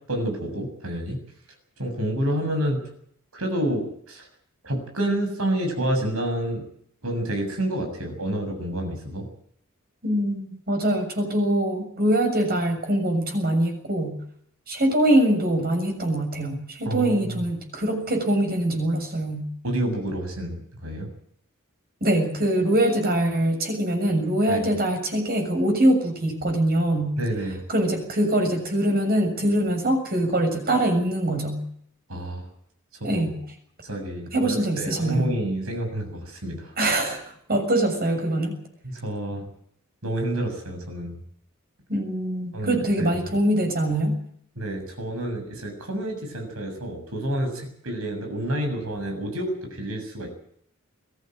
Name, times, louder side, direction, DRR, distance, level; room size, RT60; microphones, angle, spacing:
voice 1, 0.1-1.2 1.8-2.9 3.3-4.3 4.6-6.6 7.0-9.3 16.9-17.4 19.6-21.1 24.5-24.7 27.2-27.6 32.1-32.5 33.0-33.4 33.8-36.7 38.8-39.5 40.0-41.2 42.5-43.2 44.6-50.3, right 1 dB, 80° right, 5 dB, 7.2 m, -29 dB
voice 2, 10.0-14.2 14.7-19.5 22.0-27.2 27.7-31.6 33.0-33.4 34.3-35.3 36.8-38.6 41.9-44.2, right 1 dB, 45° right, 5 dB, 6.9 m, -23 dB
22.5 x 15.5 x 9.2 m, 0.66 s
head